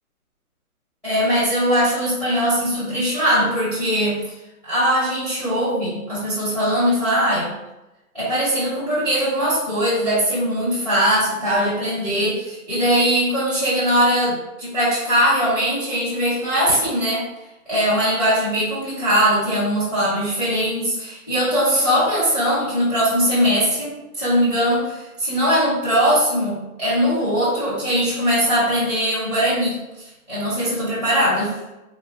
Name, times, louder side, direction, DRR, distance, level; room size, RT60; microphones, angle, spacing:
voice 1, 1.0-4.4 4.6-7.5 8.1-17.2 17.7-31.6, equal, ahead, -12 dB, 0.6 m, -20 dB
3.6 x 2.1 x 3.6 m, 0.99 s
hypercardioid pair, 170°, 44 cm